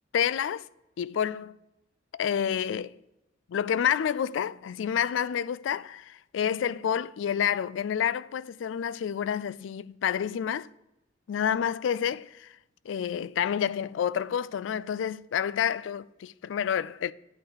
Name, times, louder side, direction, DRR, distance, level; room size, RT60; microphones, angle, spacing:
voice 1, 0.1-0.6 1.0-1.6 2.1-2.9 3.5-10.7 11.3-12.5 12.9-17.1, left 8 dB, 80° left, 0.3 m, -29 dB
8.9 x 4.0 x 6.4 m
head